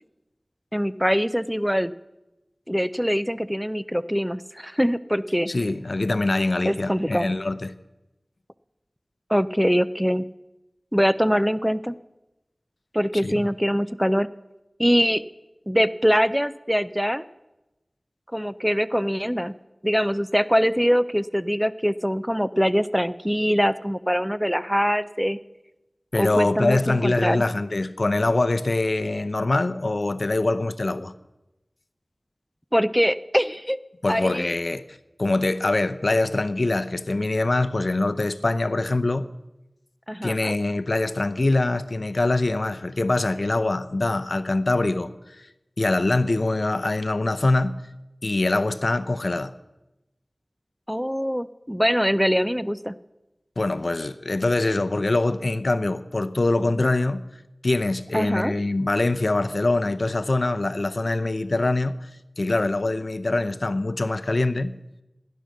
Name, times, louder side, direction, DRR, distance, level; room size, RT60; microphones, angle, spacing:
voice 1, 0.7-1.9 2.7-5.5 6.6-7.3 9.3-10.2 10.9-12.0 12.9-14.3 14.8-15.2 15.7-17.2 18.3-19.5 19.8-25.4 26.1-27.4 32.7-33.8 34.1-34.5 40.1-40.5 50.9-52.9 58.1-58.5, equal, ahead, 0.5 m, -23 dB
voice 2, 5.5-7.7 13.2-13.5 26.1-31.1 34.0-39.3 40.2-45.5 45.8-47.8 48.2-49.5 53.6-57.2 57.6-62.1 62.4-64.8, left 2 dB, 65° left, 0.7 m, -24 dB
15.5 x 10.5 x 6.5 m
wide cardioid pair, 45°, 0 cm